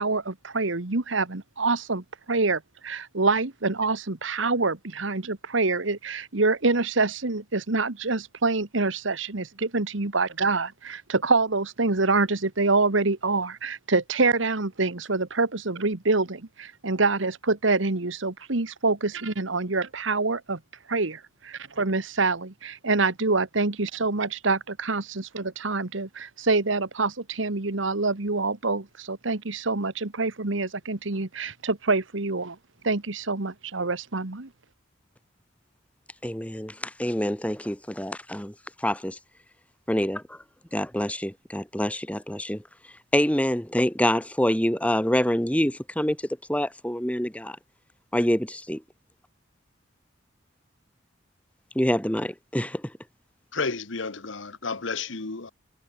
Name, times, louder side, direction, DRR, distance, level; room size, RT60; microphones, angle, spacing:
voice 1, 0.0-20.6 20.9-32.6 32.8-34.5, right 3 dB, 80° right, 1.6 m, -26 dB
voice 2, 36.2-39.2 39.9-40.4 40.7-42.6 43.1-46.2 46.5-47.6 48.1-48.8 51.8-52.8, equal, 5° left, 2.0 m, -26 dB
voice 3, 53.5-55.5, left 4 dB, 80° left, 1.4 m, -31 dB
head